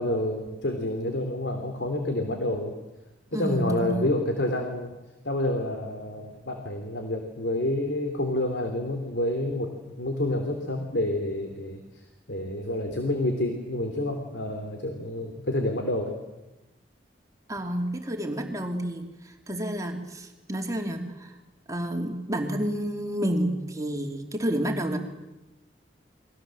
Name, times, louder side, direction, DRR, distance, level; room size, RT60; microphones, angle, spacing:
voice 1, 0.0-2.7 3.3-4.9 5.2-11.8 12.3-16.1, left 1 dB, 80° left, 5 dB, 3.2 m, -28 dB
voice 2, 3.3-4.1 17.5-21.3 21.7-25.0, right 1 dB, 20° right, 3 dB, 3.0 m, -30 dB
29.5 x 22.0 x 7.7 m, 1.0 s
head